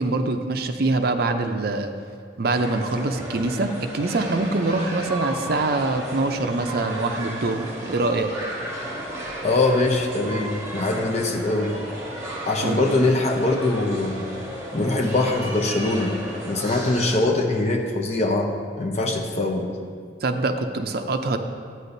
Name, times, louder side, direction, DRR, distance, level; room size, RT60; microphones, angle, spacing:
voice 1, 0.0-1.9 2.4-8.3 12.6-12.8 20.2-21.4, right 2 dB, 55° right, 7 dB, 0.5 m, -24 dB
sound 1, 2.5-17.2, equal, 15° right, 1.4 m, -34 dB
voice 2, 9.4-11.8 12.4-14.3 14.7-16.2 16.5-19.7, left 2 dB, 35° left, 2 dB, 0.7 m, -23 dB
11.5 x 8.9 x 2.6 m, 2.3 s
head